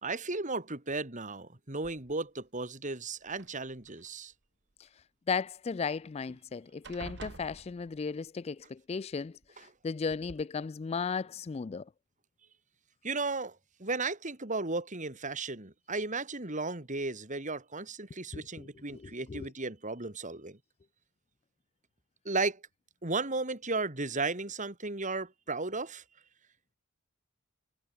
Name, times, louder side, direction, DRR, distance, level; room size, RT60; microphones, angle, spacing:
voice 1, 0.0-4.3 9.6-9.7 13.0-20.6 22.2-22.6 23.0-26.0, right 3 dB, 35° right, 2.6 m, -35 dB
sound 1, 1.8-2.4 3.3-4.1 5.9-6.0 6.3-6.5 6.8-8.3 9.4-9.5 10.1-10.4, right 3 dB, 50° right, 1.2 m, -49 dB
voice 2, 5.3-11.8 18.3-18.7 18.9-19.5, left 5 dB, 30° left, 0.3 m, -35 dB
head